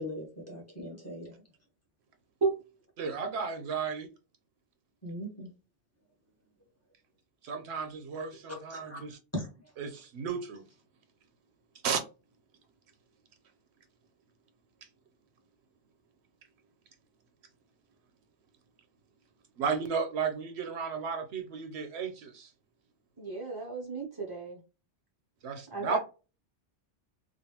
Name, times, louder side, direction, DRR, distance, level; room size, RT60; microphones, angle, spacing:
voice 1, 0.0-1.4 5.0-5.5 8.7-9.0 9.3-9.7, left 1 dB, 15° left, 1.2 m, -39 dB
voice 2, 3.0-4.1 7.4-9.2 9.8-10.6 11.8-12.0 19.6-22.5 25.4-26.0, right 6 dB, 70° right, 0.8 m, -34 dB
voice 3, 23.2-24.6 25.7-26.0, right 4 dB, 30° right, 0.4 m, -33 dB
3.1 x 2.4 x 2.8 m
omnidirectional pair, 1.2 m